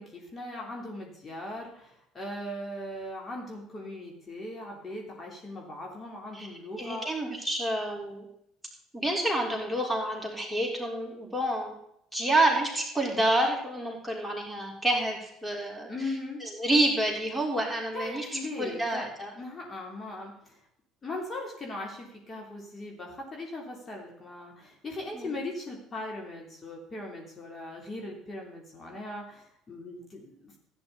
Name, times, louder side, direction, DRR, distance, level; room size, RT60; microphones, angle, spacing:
voice 1, 0.0-7.1 15.9-16.4 17.9-19.1 19.4-20.6 21.0-30.6, left 1 dB, 30° left, -1 dB, 3.4 m, -39 dB
voice 2, 6.8-8.2 8.9-11.7 12.1-16.1 16.4-19.3 25.1-25.3, right 1 dB, ahead, -2 dB, 4.3 m, -28 dB
16.0 x 9.7 x 4.1 m, 0.73 s
figure-of-eight pair, 60°, 0 cm